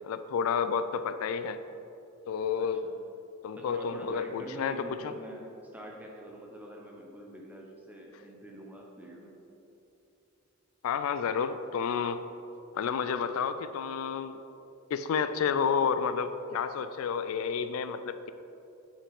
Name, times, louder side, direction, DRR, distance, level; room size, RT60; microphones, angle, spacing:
voice 1, 0.0-1.6 2.3-2.8 3.4-5.1 10.8-12.2 12.7-14.4 14.9-18.3, left 6 dB, 75° left, 11 dB, 0.3 m, -30 dB
voice 2, 2.6-2.9 3.5-9.4, equal, 10° right, -1 dB, 0.7 m, -45 dB
6.9 x 5.7 x 3.5 m, 2.8 s
head